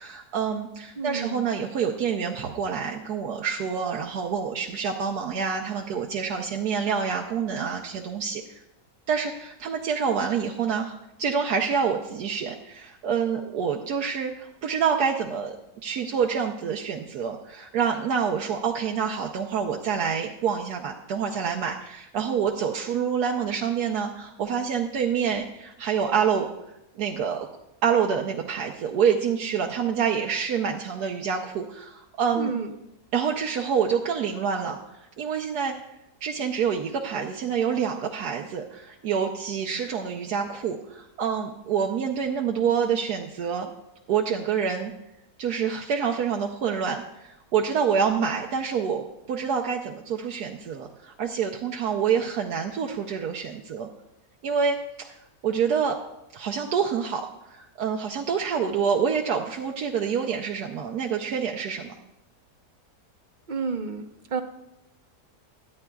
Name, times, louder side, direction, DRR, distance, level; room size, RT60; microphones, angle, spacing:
voice 1, 0.0-8.6 9.1-15.5 15.8-26.5 27.0-27.5 27.8-32.5 33.1-35.8 36.2-43.7 44.1-44.9 45.4-53.9 54.4-54.8 55.0-55.2 55.4-56.0 56.3-61.9, right 7 dB, 80° right, 1 dB, 1.3 m, -27 dB
voice 2, 1.0-1.4 32.4-32.7 63.5-64.0 64.3-64.4, right 4 dB, 40° right, 6 dB, 0.8 m, -29 dB
23.5 x 9.8 x 2.3 m, 0.88 s
omnidirectional pair, 1.6 m